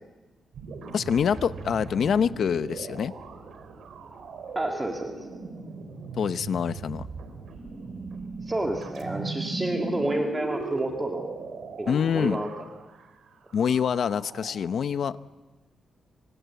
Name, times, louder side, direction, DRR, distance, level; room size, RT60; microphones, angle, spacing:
sound 1, 0.5-13.0 13.5-14.5, right 3 dB, 80° right, 3.7 m, -38 dB
voice 1, 0.9-3.1 6.2-7.1 11.9-12.4 13.5-15.2, left 7 dB, 65° left, 13 dB, 0.9 m, -25 dB
voice 2, 4.6-5.3 8.4-11.3 11.8-12.6, right 1 dB, 15° right, 2 dB, 2.1 m, -30 dB
27.0 x 25.5 x 8.3 m, 1.3 s
cardioid pair, 125°, 0 cm